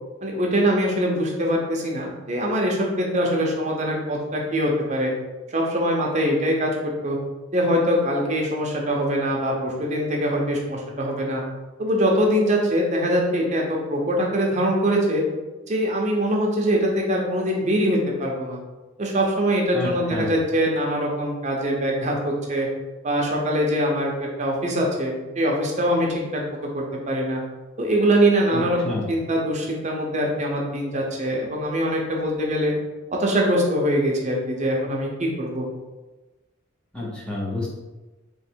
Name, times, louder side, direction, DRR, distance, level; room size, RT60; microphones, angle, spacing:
voice 1, 0.2-5.1 5.5-6.7 7.0-7.2 7.5-11.4 11.8-15.2 15.7-18.6 19.0-22.7 23.0-26.4 26.7-27.4 27.8-32.7 33.1-35.7, equal, 35° right, -1 dB, 0.8 m, -23 dB
voice 2, 19.7-20.3 28.5-29.1 36.9-37.7, left 2 dB, 5° left, -5 dB, 0.8 m, -29 dB
3.3 x 3.1 x 4.5 m, 1.2 s
head